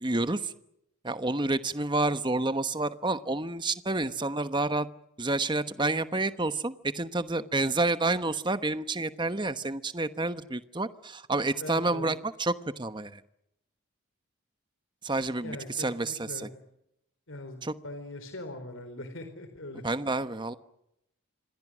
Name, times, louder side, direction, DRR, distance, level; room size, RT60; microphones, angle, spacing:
voice 1, 0.0-0.5 1.0-4.9 5.2-13.2 15.0-16.5 17.6-17.7 19.8-20.6, right 2 dB, 20° right, 11 dB, 1.1 m, -29 dB
voice 2, 11.6-12.1 15.4-16.6 17.3-19.8, left 1 dB, 65° left, 8 dB, 4.1 m, -41 dB
29.0 x 25.5 x 6.3 m, 0.81 s
head